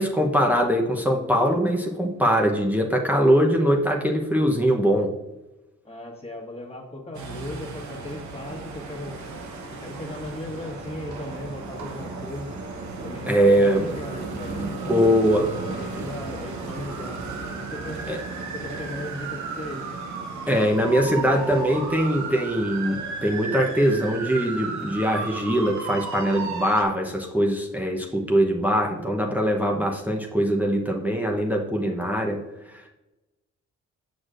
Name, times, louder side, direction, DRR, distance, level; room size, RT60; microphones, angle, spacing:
voice 1, 0.0-5.1 13.3-13.9 14.3-14.4 14.9-15.5 18.1-18.2 20.5-32.4 32.7-32.9, equal, 5° right, 0 dB, 0.8 m, -22 dB
voice 2, 5.8-9.2 9.7-12.5 13.0-15.2 15.7-17.2 17.5-18.0 18.5-19.8 31.8-32.3, left 1 dB, 20° left, -1 dB, 1.6 m, -37 dB
sound 1, 7.1-26.8, right 4 dB, 65° right, 1.0 m, -34 dB
6.5 x 6.1 x 2.5 m, 1.0 s
cardioid pair, 70°, 31 cm